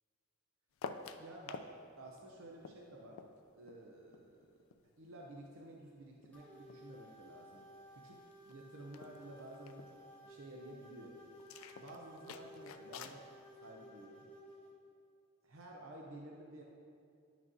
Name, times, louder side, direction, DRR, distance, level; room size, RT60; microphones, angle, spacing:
sound 1, 0.8-1.7 2.0-4.8 5.1-6.9 7.2-7.7 8.0-8.1 8.3-8.6 8.9-9.9 11.4-13.2, left 5 dB, 80° left, 0.4 m, -50 dB
voice 1, 1.2-1.7 2.0-3.2 3.5-4.5 5.0-11.1 11.8-13.3 13.6-14.3 15.4-16.6, right 1 dB, 80° right, -1 dB, 0.7 m, -53 dB
sound 2, 6.3-14.7, equal, 10° left, 1.4 m, -56 dB
10.5 x 6.1 x 2.7 m, 2.4 s
head